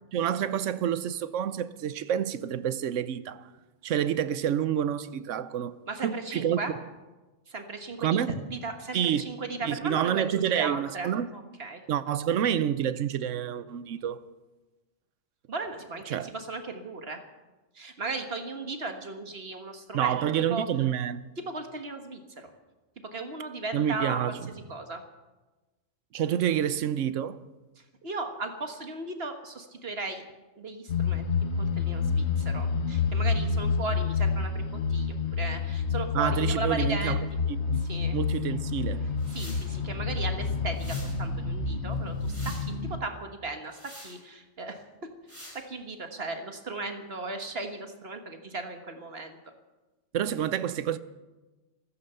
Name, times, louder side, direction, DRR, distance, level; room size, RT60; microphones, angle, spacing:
voice 1, 0.1-3.5 3.8-6.6 8.0-8.3 8.9-9.3 9.6-11.3 11.9-14.2 16.1-16.3 19.9-21.2 23.7-24.4 26.1-27.4 36.1-37.8 38.1-39.1 50.1-51.0, right 9 dB, 75° right, 1.1 m, -28 dB
voice 2, 5.9-6.7 7.5-8.2 8.5-11.8 15.5-17.2 17.8-20.2 20.5-20.7 21.5-22.5 23.1-24.2 24.5-25.0 28.0-30.2 30.6-31.3 31.6-37.2 37.8-38.2 39.3-43.8 44.0-44.8 45.7-49.4, right 3 dB, 50° right, 1.7 m, -36 dB
sound 1, 30.9-43.0, left 5 dB, 60° left, 1.3 m, -29 dB
sound 2, 39.2-39.7 40.7-41.2 41.9-42.7 43.7-44.2 45.3-45.6, equal, 10° left, 3.9 m, -46 dB
15.0 x 14.0 x 6.8 m
omnidirectional pair, 1.3 m